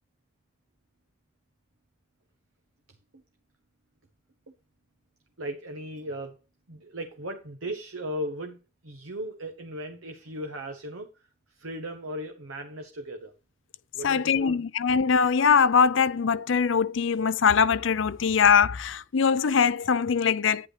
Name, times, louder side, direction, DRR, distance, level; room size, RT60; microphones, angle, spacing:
voice 1, 5.4-6.4 6.7-8.6 8.8-11.1 11.5-13.3 13.9-14.6, equal, 85° right, 1.2 m, -37 dB
voice 2, 14.0-20.7, left 6 dB, 70° left, 0.5 m, -22 dB
11.0 x 9.6 x 3.2 m
head